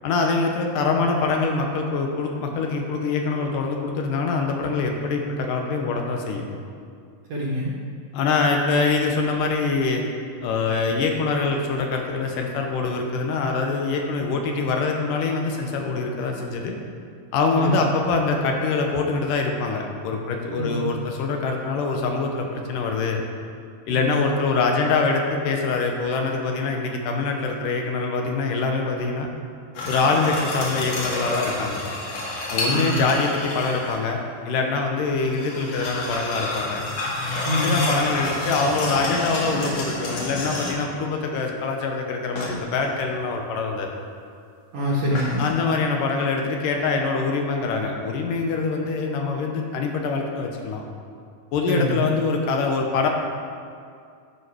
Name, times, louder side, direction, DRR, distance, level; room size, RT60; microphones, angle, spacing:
voice 1, 0.0-6.5 8.1-10.0 10.4-16.8 17.3-23.2 23.9-29.3 29.9-31.8 32.5-34.2 34.5-36.8 37.6-43.9 45.4-50.8 51.5-53.1, left 4 dB, 80° left, 2 dB, 2.2 m, -24 dB
voice 2, 7.3-7.7 17.6-17.8 20.6-20.9 23.9-24.1 32.7-33.0 37.4-37.9 44.7-45.4 51.7-52.0, equal, 65° right, -5 dB, 1.8 m, -25 dB
sound 1, 29.7-34.0 35.2-41.0 42.3-42.9 45.1-45.5, left 2 dB, 55° left, 2.4 m, -29 dB
12.5 x 5.2 x 4.7 m, 2.3 s
omnidirectional pair, 4.1 m